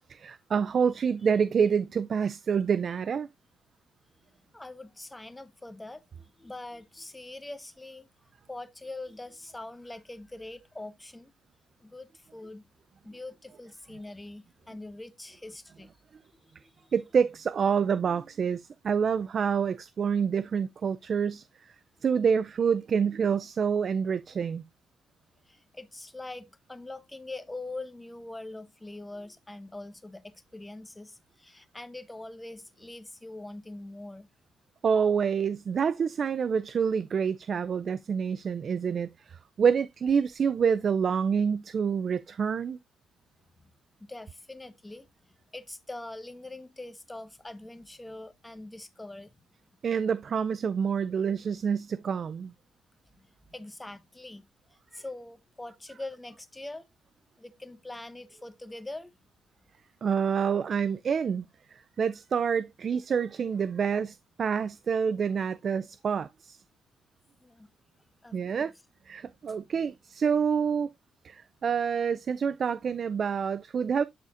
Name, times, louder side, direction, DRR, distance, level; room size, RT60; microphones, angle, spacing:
voice 1, 0.1-3.3 16.9-21.7 22.0-24.6 34.8-42.8 49.8-52.5 60.0-61.4 61.7-66.6 68.3-68.7 69.1-70.9 71.2-74.0, right 6 dB, 50° right, 0.3 m, -27 dB
voice 2, 4.5-8.1 8.5-11.3 11.8-12.6 13.0-15.9 16.4-16.9 25.5-34.3 43.6-43.7 44.0-45.1 45.5-49.4 53.1-54.4 54.9-56.9 57.4-59.1 67.4-67.7 68.2-68.7 69.5-69.6, left 2 dB, 15° left, 1.0 m, -43 dB
12.0 x 4.1 x 2.5 m
cardioid pair, 90°, 0 cm